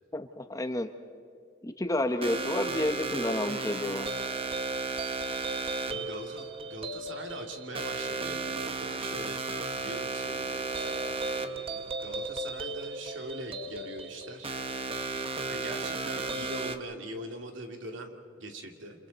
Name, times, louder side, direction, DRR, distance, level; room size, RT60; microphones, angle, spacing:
voice 1, 0.1-0.9 1.6-4.1, left 1 dB, 15° left, 7 dB, 1.0 m, -30 dB
sound 1, 2.2-16.8, right 3 dB, 30° right, 1.0 m, -34 dB
voice 2, 5.9-9.5 9.8-14.6 15.5-19.1, right 1 dB, 75° right, 3 dB, 2.5 m, -42 dB
29.0 x 27.0 x 4.1 m, 2.4 s
head